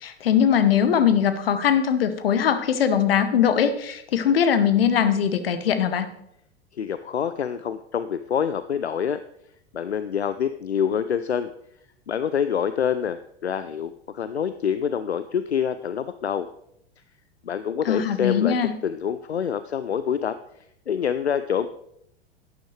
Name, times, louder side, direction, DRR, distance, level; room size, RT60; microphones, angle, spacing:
voice 1, 0.0-6.1 17.9-18.7, left 8 dB, 65° left, 10 dB, 1.1 m, -21 dB
voice 2, 6.7-9.2 9.7-11.5 12.1-16.5 17.4-18.6 18.8-21.7, left 8 dB, 80° left, 12 dB, 0.5 m, -26 dB
11.5 x 9.4 x 3.2 m, 0.74 s
figure-of-eight pair, 90°, 32 cm